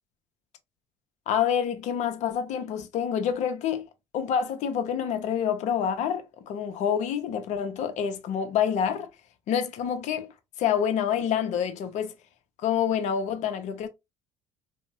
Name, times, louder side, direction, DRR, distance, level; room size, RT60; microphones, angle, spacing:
voice 1, 1.3-3.9 4.1-9.1 9.5-10.3 10.6-12.1 12.6-13.9, left 8 dB, 55° left, 0.6 m, -27 dB
2.6 x 2.0 x 2.7 m
hypercardioid pair, 60°, 14 cm